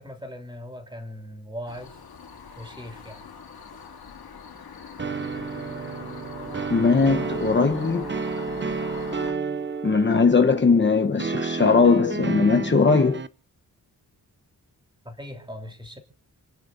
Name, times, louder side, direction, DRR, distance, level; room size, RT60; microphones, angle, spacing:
voice 1, 0.0-2.0 2.5-3.3 15.0-16.0, equal, 15° right, 3.3 m, -39 dB
sound 1, 1.7-9.3, left 6 dB, 85° left, 2.3 m, -41 dB
sound 2, 5.0-13.3, right 4 dB, 30° right, 0.8 m, -31 dB
voice 2, 6.7-8.1 9.8-13.2, left 4 dB, 30° left, 0.9 m, -19 dB
29.5 x 10.0 x 2.5 m
wide cardioid pair, 145°, 36 cm